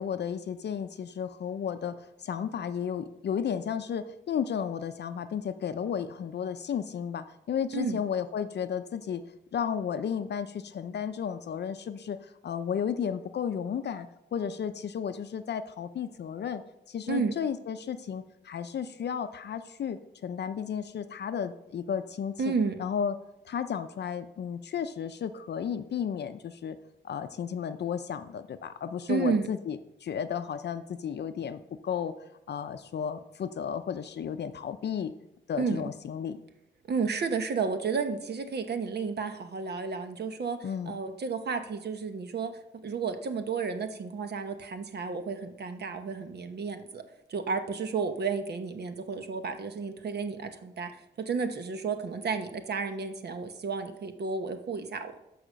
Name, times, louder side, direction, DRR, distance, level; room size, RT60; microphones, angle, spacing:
voice 1, 0.0-9.2 9.5-16.6 16.9-22.5 22.8-23.2 23.4-26.8 27.0-32.1 32.5-35.1 35.5-36.4 40.6-40.9, left 7 dB, 60° left, 10 dB, 0.6 m, -33 dB
voice 2, 22.4-22.8 29.1-29.5 35.6-35.8 36.9-40.6 40.9-42.5 42.8-47.0 47.3-55.2, right 5 dB, 55° right, 8 dB, 1.0 m, -32 dB
13.0 x 4.9 x 6.2 m, 0.87 s
wide cardioid pair, 150°, 20 cm